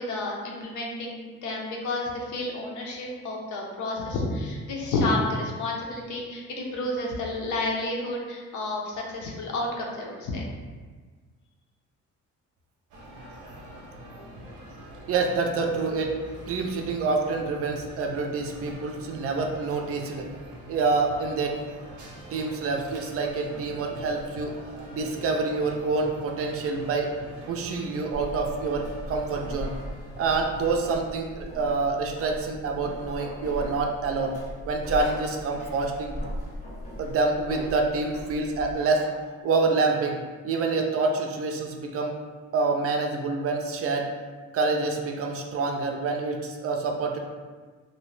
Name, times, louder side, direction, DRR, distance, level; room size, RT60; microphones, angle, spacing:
voice 1, 0.0-10.5, left 2 dB, 75° left, -1 dB, 0.6 m, -30 dB
sound 1, 12.9-31.0, right 1 dB, 85° right, 0.7 m, -44 dB
voice 2, 15.1-16.1 16.5-20.3 20.7-21.6 22.3-24.6 24.9-27.1 27.5-29.7 30.2-34.4 34.7-36.2 37.0-40.2 40.4-42.2 42.5-44.1 44.5-47.2, right 3 dB, 50° right, 2 dB, 0.4 m, -27 dB
sound 2, 28.1-38.8, equal, 25° left, 0.7 m, -39 dB
2.6 x 2.0 x 3.1 m, 1.4 s
cardioid pair, 90°, 30 cm